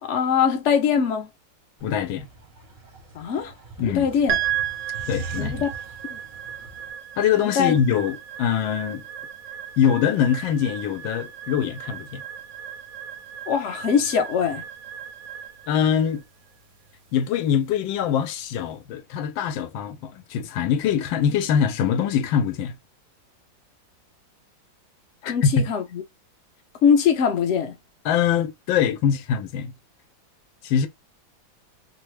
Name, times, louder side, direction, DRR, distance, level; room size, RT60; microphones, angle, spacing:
voice 1, 0.0-1.3 3.1-3.5 3.8-4.4 5.4-5.7 6.0-6.2 7.4-7.8 13.5-14.6 25.3-26.0 26.8-27.8, left 7 dB, 65° left, 0.7 m, -22 dB
voice 2, 1.8-2.3 3.8-4.1 5.1-5.6 7.2-9.0 9.8-12.2 15.7-16.2 17.1-22.7 25.2-25.6 28.0-29.7 30.6-30.9, left 8 dB, 85° left, 1.3 m, -23 dB
sound 1, 1.8-6.9, right 4 dB, 45° right, 0.6 m, -41 dB
sound 2, 4.3-18.7, right 10 dB, 70° right, 0.9 m, -35 dB
3.2 x 2.1 x 3.0 m
omnidirectional pair, 2.1 m